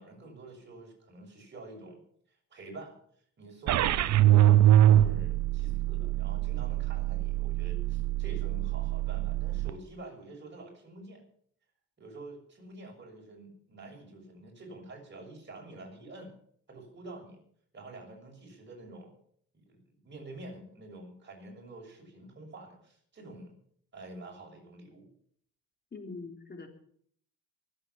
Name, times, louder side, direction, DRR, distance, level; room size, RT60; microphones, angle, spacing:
voice 1, 0.0-2.0 2.3-3.0 3.4-11.2 12.0-16.4 16.7-17.4 17.7-19.1 19.5-23.5 23.9-25.1, right 2 dB, 40° right, 0 dB, 6.7 m, -48 dB
sound 1, 3.7-9.7, right 12 dB, 65° right, 0.7 m, -24 dB
voice 2, 25.9-26.7, left 3 dB, 35° left, 4 dB, 3.5 m, -42 dB
24.5 x 8.3 x 5.8 m, 0.64 s
cardioid pair, 90°, 30 cm